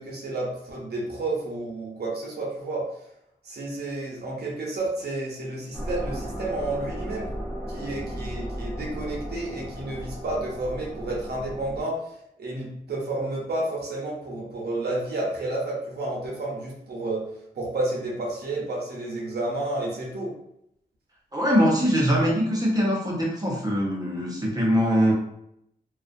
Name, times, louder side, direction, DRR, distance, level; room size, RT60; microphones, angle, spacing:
voice 1, 0.0-2.9 3.4-7.3 7.7-12.0 12.4-17.2 17.5-20.3, right 2 dB, 75° right, -3 dB, 0.8 m, -31 dB
sound 1, 5.7-11.8, equal, 10° left, 1.2 m, -35 dB
voice 2, 21.3-25.1, equal, 20° right, -4 dB, 0.8 m, -22 dB
2.4 x 2.3 x 2.5 m, 0.76 s
cardioid pair, 70°, 17 cm